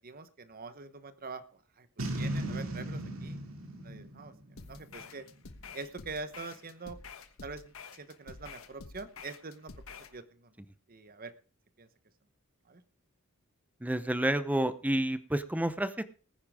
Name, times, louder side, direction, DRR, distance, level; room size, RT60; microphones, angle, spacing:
voice 1, 0.0-1.9 2.2-3.4 3.8-4.3 4.7-5.3 5.7-7.0 7.4-10.5 10.9-11.3 11.8-11.9 12.7-12.8, right 4 dB, 45° right, 11 dB, 1.1 m, -44 dB
Boom, 2.0-5.3, right 1 dB, 70° right, 2.5 m, -37 dB
sound 1, 4.6-10.2, left 4 dB, 75° left, 1.3 m, -49 dB
voice 2, 13.8-16.0, right 1 dB, 5° right, 12 dB, 0.7 m, -29 dB
19.5 x 9.9 x 3.6 m, 0.38 s
head